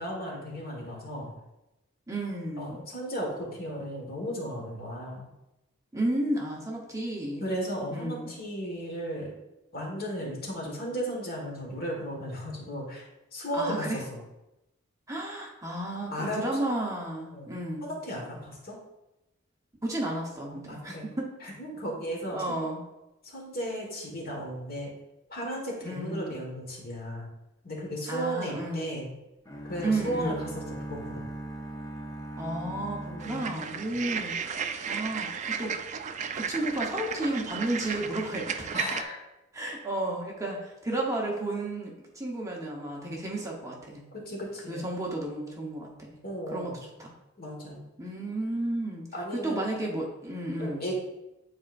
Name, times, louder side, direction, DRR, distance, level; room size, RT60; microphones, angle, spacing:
voice 1, 0.0-1.3 2.6-5.3 7.4-9.3 9.7-14.2 16.1-16.4 17.3-17.5 17.8-18.8 20.7-21.0 21.4-22.7 23.2-24.9 25.3-27.3 27.6-29.1 29.7-30.6 30.9-31.3 33.1-34.0 38.7-39.2 44.1-44.9 46.2-46.8 47.4-47.8 49.1-49.6 50.6-51.0, equal, 50° left, -1 dB, 1.6 m, -35 dB
voice 2, 2.1-2.8 5.9-7.4 7.9-8.3 13.5-14.0 15.1-17.9 19.8-21.3 22.3-22.8 25.8-26.4 28.1-29.0 29.8-30.6 32.4-35.7 36.3-38.7 39.5-44.0 44.7-46.2 46.5-47.1 48.0-49.1 49.3-50.9, right 1 dB, 15° right, -2 dB, 1.0 m, -32 dB
sound 1, 29.5-34.4, right 1 dB, 20° left, 0.7 m, -40 dB
sound 2, 33.2-39.0, right 6 dB, 35° right, 0.4 m, -34 dB
9.3 x 4.3 x 2.5 m, 0.94 s
head